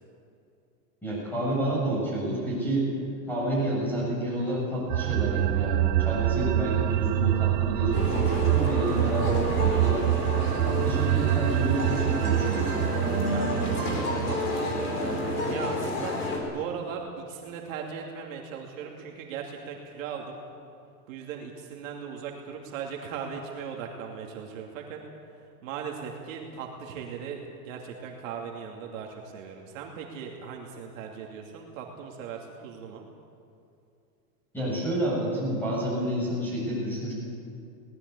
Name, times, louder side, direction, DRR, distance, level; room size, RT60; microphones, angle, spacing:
voice 1, 1.0-2.9 3.3-10.1 10.6-12.9 34.5-37.1, right 1 dB, 5° left, -5 dB, 8.0 m, -29 dB
sound 1, 4.9-15.7, right 17 dB, 90° right, 0.6 m, -26 dB
sound 2, 7.9-16.4, left 1 dB, 25° left, 4.0 m, -30 dB
voice 2, 13.3-20.4 21.1-25.0 25.4-33.1, right 7 dB, 55° right, 0 dB, 2.7 m, -38 dB
22.0 x 19.0 x 8.5 m, 2.6 s
supercardioid pair, 170°, 47 cm